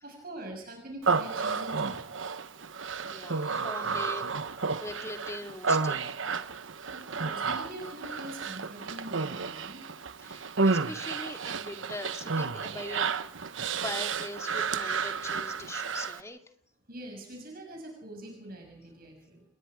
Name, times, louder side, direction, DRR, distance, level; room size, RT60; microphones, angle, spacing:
voice 1, 0.0-2.2 6.9-9.8 16.9-19.4, right 1 dB, 50° right, 2 dB, 6.1 m, -44 dB
Human voice, 1.0-16.2, right 4 dB, 85° right, 1.1 m, -31 dB
voice 2, 3.1-6.1 10.2-13.1 13.5-16.4, left 2 dB, 15° left, 5 dB, 2.2 m, -41 dB
29.0 x 21.0 x 4.9 m, 0.67 s
head